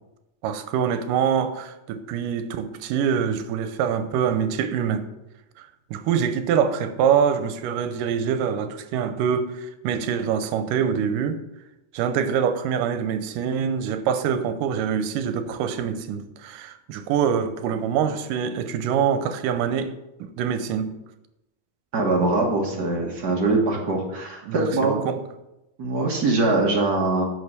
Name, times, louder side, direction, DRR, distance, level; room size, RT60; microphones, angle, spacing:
voice 1, 0.4-5.1 5.6-11.4 11.9-19.9 20.2-21.0 24.4-25.2, right 7 dB, 85° right, 2.3 m, -25 dB
voice 2, 21.9-25.0 25.8-27.3, right 2 dB, 45° right, 1.3 m, -22 dB
9.5 x 5.1 x 6.6 m
omnidirectional pair, 3.7 m